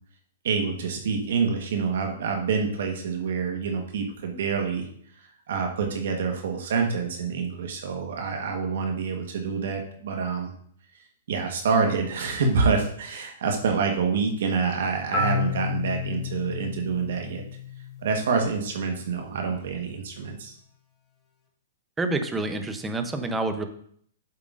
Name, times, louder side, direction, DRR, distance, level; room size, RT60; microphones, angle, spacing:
voice 1, 0.4-4.9 5.5-10.5 11.3-17.4 18.0-20.5, right 5 dB, 70° right, 3 dB, 1.2 m, -27 dB
Marimba xylophone, 15.1-19.0, left 6 dB, 15° left, 1.2 m, -32 dB
voice 2, 22.0-23.6, right 2 dB, 10° right, 7 dB, 0.7 m, -28 dB
8.0 x 7.4 x 2.5 m, 0.62 s
hypercardioid pair, 150°, 0 cm